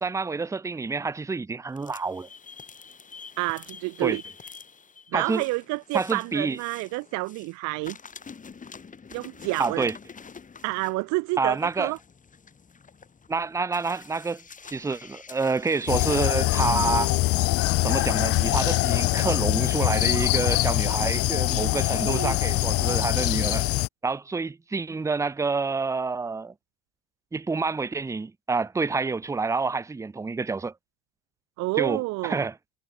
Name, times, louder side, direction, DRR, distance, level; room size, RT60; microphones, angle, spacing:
voice 1, 0.0-2.3 4.0-4.2 5.1-5.4 5.9-6.6 9.6-10.0 11.4-11.9 13.3-17.1 17.8-23.7 24.0-26.5 27.3-30.7 31.8-32.5, right 4 dB, 10° right, 0.7 m, -28 dB
sound 1, 1.7-7.5 7.8-17.0, left 5 dB, 20° left, 3.8 m, -47 dB
voice 2, 3.4-4.2 5.1-8.0 9.1-9.9 10.6-12.0 22.0-22.3 31.6-32.5, right 24 dB, 50° right, 0.5 m, -29 dB
sound 2, 15.9-23.9, left 19 dB, 40° left, 0.4 m, -23 dB
supercardioid pair, 130°, 39 cm